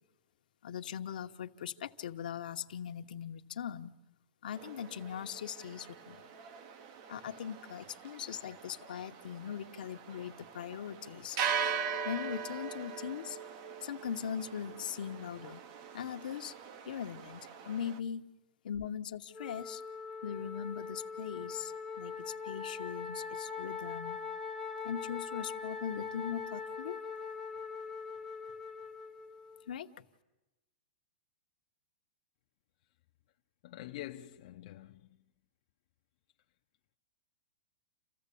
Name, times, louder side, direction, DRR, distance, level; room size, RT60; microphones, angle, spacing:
voice 1, 0.6-4.0 4.4-6.2 7.1-11.4 12.0-13.4 13.8-15.6 15.9-16.6 16.9-18.2 18.6-19.8 20.2-24.2 24.8-27.0 29.7-30.0, left 8 dB, 70° left, 1.0 m, -40 dB
sound 1, 4.5-18.0, right 6 dB, 35° right, 0.9 m, -41 dB
Wind instrument woodwind instrument, 19.3-29.7, left 5 dB, 5° left, 0.8 m, -42 dB
voice 2, 33.6-35.2, left 14 dB, 40° left, 0.7 m, -46 dB
28.0 x 15.0 x 8.4 m
supercardioid pair, 170°, 5 cm